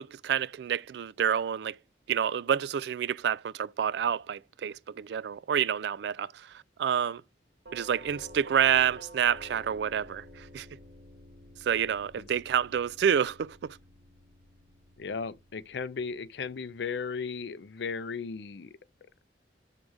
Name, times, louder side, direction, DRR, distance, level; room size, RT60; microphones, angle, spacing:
voice 1, 0.0-1.8 2.1-7.2 7.7-10.7 11.6-13.8, right 8 dB, 65° right, 0.3 m, -28 dB
Doorbell, 7.7-16.5, equal, 85° right, 2.1 m, -51 dB
voice 2, 15.0-18.8, left 5 dB, 70° left, 0.5 m, -36 dB
6.3 x 3.7 x 4.9 m
head